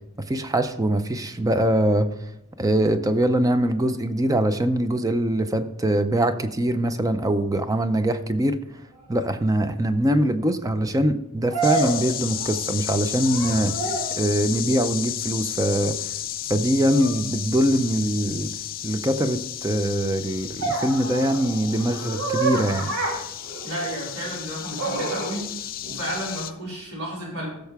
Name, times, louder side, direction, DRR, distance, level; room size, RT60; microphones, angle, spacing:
voice 1, 0.2-2.2 2.6-8.6 9.1-16.0 16.5-18.5 18.8-22.9, right 1 dB, 15° right, 10 dB, 0.5 m, -23 dB
sound 1, 9.1-9.2 11.5-12.8 13.2-14.2 16.9-17.2 20.6-24.1 24.8-25.3, right 3 dB, 85° right, 2.1 m, -29 dB
sound 2, 11.6-26.5, left 12 dB, 40° left, 0.5 m, -33 dB
voice 2, 23.6-25.5 25.8-27.5, right 1 dB, 70° right, -4 dB, 4.5 m, -32 dB
15.0 x 6.6 x 3.5 m, 0.83 s
head